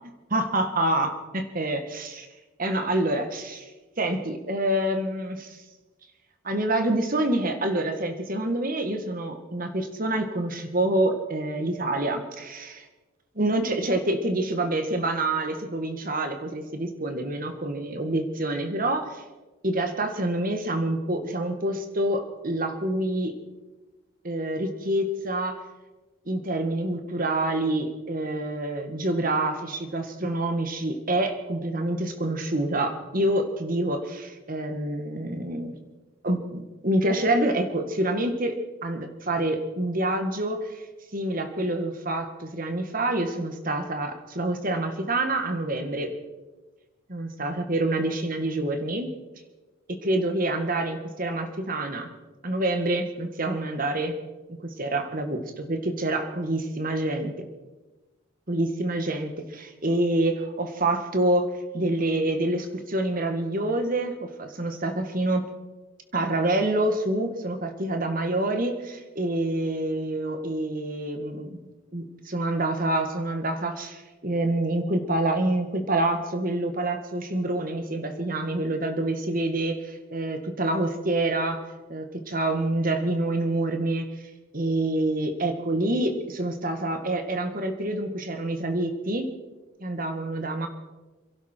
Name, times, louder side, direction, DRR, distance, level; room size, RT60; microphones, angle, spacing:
voice 1, 0.3-2.3 2.6-3.7 4.0-5.6 6.4-12.8 13.3-19.2 19.6-23.3 24.2-25.6 26.2-35.7 36.2-38.6 38.8-40.8 41.1-46.1 47.1-49.1 50.0-52.1 52.4-54.1 54.6-57.4 58.5-65.5 66.1-81.6 81.9-84.1 84.5-89.2 89.8-90.7, right 1 dB, 40° right, 6 dB, 1.8 m, -27 dB
27.5 x 11.5 x 4.5 m, 1.2 s
head